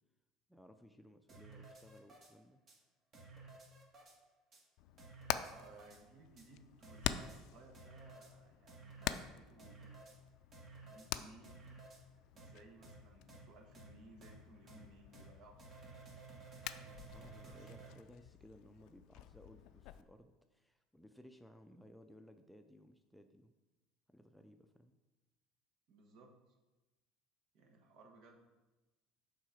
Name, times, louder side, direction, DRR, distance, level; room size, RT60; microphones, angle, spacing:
voice 1, 0.5-2.6 16.8-23.5 24.1-24.9, equal, 5° left, 6 dB, 0.5 m, -60 dB
sound 1, 1.3-2.3 2.7-2.8 3.1-4.2 4.5-4.6 5.0-6.0 6.4-6.5 6.8-7.4 7.7-8.3 8.7-9.2 9.6-10.2 10.5-11.1 11.4-12.0 12.4-12.5 12.8-13.0 13.3-13.4 13.7-13.9 14.2-14.3 14.7-14.8 15.1-15.3 15.6-17.9, right 3 dB, 40° right, 1.7 m, -55 dB
Hammer, 4.8-20.0, left 12 dB, 70° left, 0.3 m, -47 dB
voice 2, 5.5-9.9 10.9-11.6 12.3-16.0 16.9-17.9 25.9-26.3 27.5-28.4, right 2 dB, 60° right, 2 dB, 1.3 m, -61 dB
6.2 x 3.9 x 4.9 m, 1.1 s
supercardioid pair, 90°, 0 cm